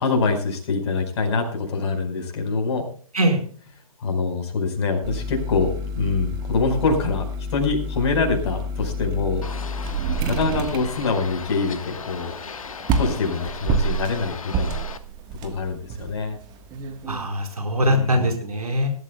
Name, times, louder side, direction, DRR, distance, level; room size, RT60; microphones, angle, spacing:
voice 1, 0.0-2.9 4.0-7.2 7.5-9.4 10.2-12.3 13.0-14.8 15.4-16.4 17.7-18.3, left 4 dB, 50° left, 3 dB, 4.9 m, -24 dB
sound 1, 5.0-17.3, right 2 dB, 20° right, 1.4 m, -29 dB
sound 2, 9.4-15.0, left 5 dB, 65° left, 1.4 m, -37 dB
voice 2, 17.1-18.9, equal, 80° right, 4 dB, 4.6 m, -22 dB
22.0 x 13.0 x 2.3 m, 0.43 s
figure-of-eight pair, 130°, 19 cm